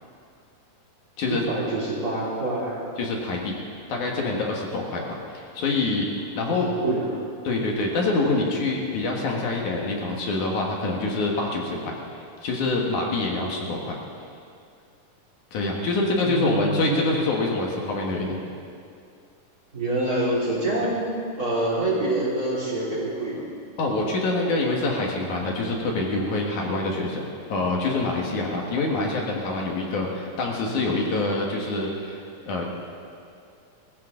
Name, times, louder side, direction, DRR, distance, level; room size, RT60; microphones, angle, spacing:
voice 1, 1.3-2.8 6.5-7.1 16.2-17.1 19.7-23.4, right 1 dB, 25° right, -5 dB, 3.3 m, -26 dB
voice 2, 3.0-3.6 3.9-5.0 5.3-6.7 7.4-14.0 15.5-18.4 23.8-32.6, left 2 dB, 65° left, -1 dB, 3.0 m, -26 dB
21.0 x 16.0 x 3.8 m, 2.4 s
omnidirectional pair, 3.8 m